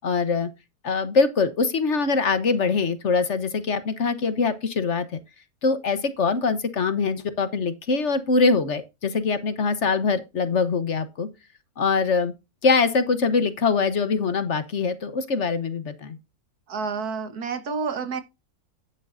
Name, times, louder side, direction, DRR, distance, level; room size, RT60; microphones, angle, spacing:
voice 1, 0.0-0.5 0.8-5.2 5.6-11.3 11.8-12.3 12.6-16.2, left 4 dB, 50° left, 1.3 m, -23 dB
voice 2, 16.7-18.2, right 5 dB, 75° right, 1.9 m, -29 dB
10.0 x 9.9 x 2.6 m
omnidirectional pair, 1.6 m